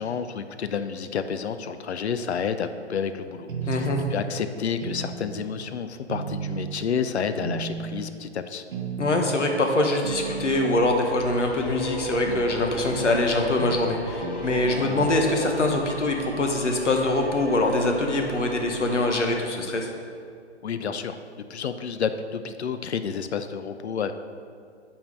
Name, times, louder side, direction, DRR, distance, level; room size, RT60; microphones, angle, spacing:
voice 1, 0.0-8.6 20.6-21.2 21.5-24.1, left 6 dB, 65° left, 10 dB, 0.6 m, -30 dB
sound 1, 3.5-4.2 4.8-5.5 6.1-6.8 7.4-8.1 8.7-9.4 10.0-10.7 12.3-12.5 12.9-13.1 13.6-13.8 14.2-14.4 14.9-15.1, right 6 dB, 45° right, 0.9 m, -34 dB
voice 2, 3.7-4.0 9.0-19.9, left 2 dB, 85° left, 3 dB, 1.2 m, -24 dB
sound 2, 10.0-20.0, equal, 5° left, 0.4 m, -40 dB
sound 3, 11.2-15.7, left 1 dB, 35° left, 1.3 m, -33 dB
5.5 x 4.5 x 6.3 m, 2.2 s
figure-of-eight pair, 135°, 35 cm